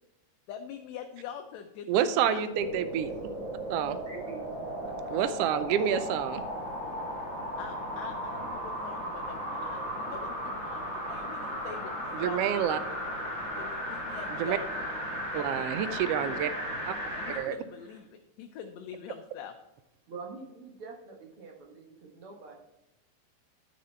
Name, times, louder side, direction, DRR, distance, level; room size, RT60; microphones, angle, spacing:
voice 1, 0.5-2.4 7.6-11.9 12.2-13.0 13.6-14.9 15.3-16.1 17.1-19.5, left 8 dB, 75° left, 5 dB, 1.8 m, -44 dB
voice 2, 1.9-3.1 3.7-4.0 5.1-6.4 12.1-12.8 14.4-14.6 15.3-16.5 16.9-17.0 17.4-17.5, right 9 dB, 80° right, 12 dB, 1.4 m, -28 dB
sound 1, 2.5-17.5 17.9-18.0, equal, 25° right, 2.6 m, -36 dB
voice 3, 4.1-4.4 5.0-5.2 20.1-22.5, right 4 dB, 55° right, 1 dB, 2.0 m, -45 dB
10.5 x 6.6 x 4.4 m, 0.91 s
omnidirectional pair, 3.4 m